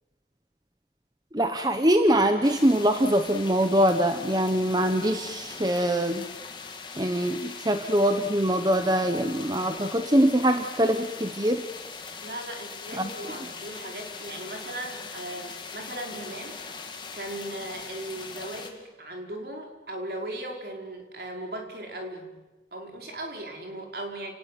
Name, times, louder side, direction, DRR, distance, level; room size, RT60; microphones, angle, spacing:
voice 1, 1.3-6.3 7.0-11.6 13.0-13.1, equal, 20° right, 7 dB, 1.1 m, -23 dB
sound 1, 2.4-18.7, left 4 dB, 25° left, 2.4 m, -41 dB
voice 2, 12.2-16.8 17.1-22.3 22.7-24.3, right 1 dB, 55° right, 2 dB, 5.0 m, -38 dB
30.0 x 19.0 x 9.4 m, 1.2 s
head